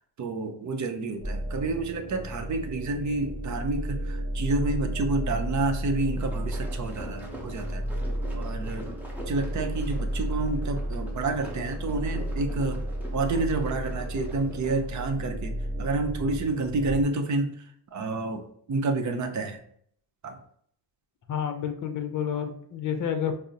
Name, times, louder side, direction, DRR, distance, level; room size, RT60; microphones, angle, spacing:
voice 1, 0.2-7.8 8.3-8.9 9.2-12.8 13.1-19.6 20.2-20.4, right 3 dB, 45° right, 6 dB, 0.6 m, -29 dB
sound 1, 1.2-17.0, equal, 10° left, 1.1 m, -33 dB
sound 2, 6.0-14.9, right 1 dB, 5° right, 0.7 m, -44 dB
voice 2, 21.3-23.4, left 8 dB, 50° left, 6 dB, 0.6 m, -29 dB
4.9 x 2.0 x 2.7 m, 0.64 s
cardioid pair, 115°, 41 cm